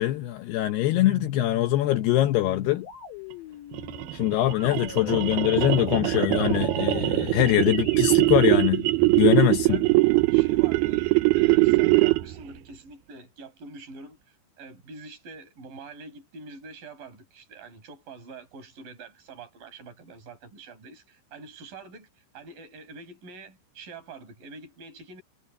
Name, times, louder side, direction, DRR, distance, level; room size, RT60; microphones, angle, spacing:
voice 1, 0.0-2.9 4.1-8.9 9.2-9.8, left 14 dB, 80° left, 2.3 m, -23 dB
sound 1, 0.9-9.5, left 4 dB, 60° left, 6.4 m, -42 dB
sound 2, 3.7-12.4, right 21 dB, 85° right, 2.2 m, -22 dB
voice 2, 7.0-7.5 9.2-9.9 10.3-14.2 14.6-22.1 22.3-25.2, right 3 dB, 45° right, 6.9 m, -45 dB
omnidirectional pair, 5.7 m